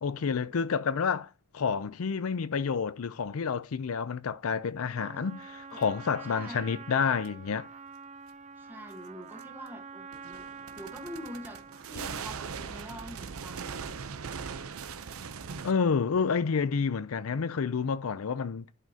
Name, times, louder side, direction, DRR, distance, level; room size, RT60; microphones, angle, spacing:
voice 1, 0.0-7.7 15.6-18.6, left 5 dB, 85° left, 0.5 m, -29 dB
Trumpet, 5.0-11.9, right 5 dB, 30° right, 0.4 m, -46 dB
sound 1, 5.8-5.9 7.3-7.4 9.4-9.5 10.1-15.7, right 6 dB, 90° right, 0.7 m, -40 dB
voice 2, 6.3-6.8 8.6-13.7, equal, 10° right, 1.3 m, -45 dB
11.0 x 5.1 x 2.8 m
head